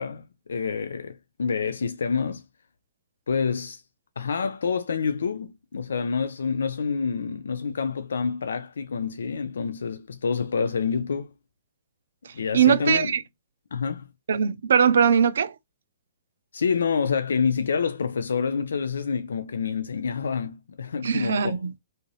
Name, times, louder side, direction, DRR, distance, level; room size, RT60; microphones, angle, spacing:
voice 1, 0.0-2.4 3.3-3.8 4.2-11.3 12.3-13.1 13.7-14.1 16.5-21.6, left 5 dB, 70° left, 0.3 m, -27 dB
voice 2, 12.5-13.2 14.3-15.5 21.0-21.8, right 7 dB, 65° right, 0.4 m, -21 dB
2.7 x 2.4 x 3.0 m
figure-of-eight pair, 120°, 0 cm